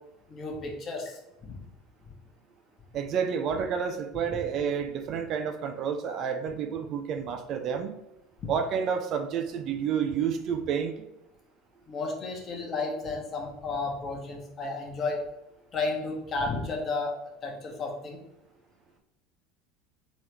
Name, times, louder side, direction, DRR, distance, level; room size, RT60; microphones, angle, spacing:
voice 1, 0.3-1.5 8.4-8.5 11.9-15.2 15.7-17.1 17.4-18.2, left 3 dB, 40° left, 0 dB, 1.1 m, -33 dB
voice 2, 2.9-7.9 8.5-10.9, right 7 dB, 50° right, 6 dB, 0.5 m, -30 dB
3.5 x 3.1 x 3.3 m, 0.89 s
hypercardioid pair, 75°, 0 cm